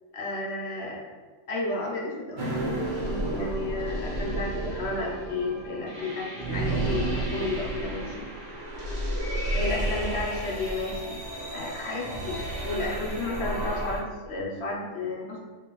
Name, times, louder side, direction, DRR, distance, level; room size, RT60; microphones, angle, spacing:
voice 1, 0.1-1.1 1.5-2.4 3.0-8.3 9.5-11.2 11.5-15.4, left 2 dB, 60° left, -2 dB, 0.7 m, -32 dB
sound 1, 2.4-14.0, right 1 dB, 55° right, 1.0 m, -31 dB
3.5 x 3.1 x 3.0 m, 1.4 s
omnidirectional pair, 1.5 m